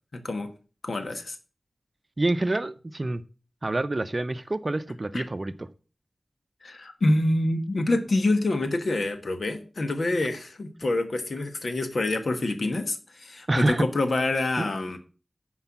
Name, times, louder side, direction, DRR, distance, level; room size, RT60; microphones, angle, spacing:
voice 1, 0.8-1.3 5.1-5.2 6.6-15.0, left 2 dB, 80° left, 7 dB, 1.2 m, -26 dB
voice 2, 2.2-3.2 3.6-5.5 13.5-13.8 14.6-14.7, right 2 dB, 40° right, 14 dB, 0.6 m, -26 dB
9.8 x 4.6 x 5.8 m, 0.36 s
wide cardioid pair, 75°, 0 cm